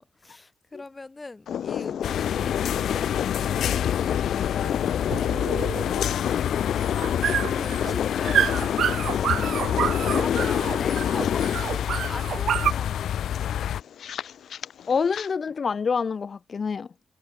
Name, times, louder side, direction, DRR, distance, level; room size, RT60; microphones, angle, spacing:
voice 1, 0.0-4.0 7.5-8.7 10.0-13.5, left 3 dB, 15° left, 3.7 m, -41 dB
sound 1, 1.5-15.3, left 9 dB, 65° left, 2.2 m, -29 dB
sound 2, 2.0-13.8, left 10 dB, 85° left, 0.4 m, -28 dB
sound 3, 2.0-12.7, right 9 dB, 65° right, 2.7 m, -29 dB
voice 2, 9.3-9.6 14.9-16.9, left 5 dB, 35° left, 0.6 m, -27 dB
wide cardioid pair, 175°, 0 cm